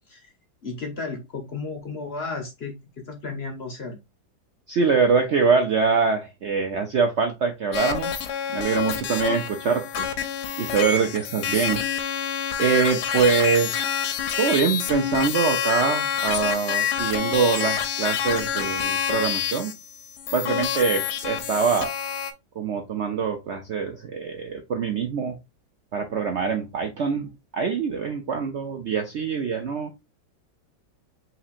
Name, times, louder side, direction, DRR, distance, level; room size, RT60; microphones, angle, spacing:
voice 1, 0.6-4.0, left 4 dB, 45° left, 0.9 m, -34 dB
voice 2, 4.7-8.1 8.5-10.1 10.6-11.8 12.6-19.7 20.3-21.9 22.6-25.4 25.9-29.9, right 5 dB, 85° right, 0.6 m, -24 dB
sound 1, 7.7-22.3, left 8 dB, 70° left, 1.2 m, -27 dB
5.7 x 3.2 x 2.4 m
omnidirectional pair, 1.9 m